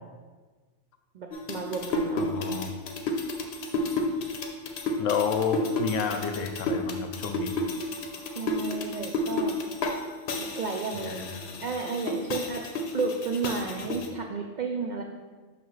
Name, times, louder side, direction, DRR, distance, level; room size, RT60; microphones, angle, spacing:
voice 1, 1.1-2.6 8.4-9.6 10.4-11.2 11.6-12.6 12.9-15.0, right 4 dB, 75° right, 3 dB, 0.4 m, -32 dB
sound 1, 1.3-10.0 10.3-14.1, left 2 dB, 60° left, 0.8 m, -31 dB
voice 2, 2.1-2.7 5.0-7.5 10.9-11.6 13.9-14.0, left 6 dB, 85° left, 7 dB, 1.0 m, -30 dB
5.8 x 5.5 x 3.1 m, 1.4 s
omnidirectional pair, 1.3 m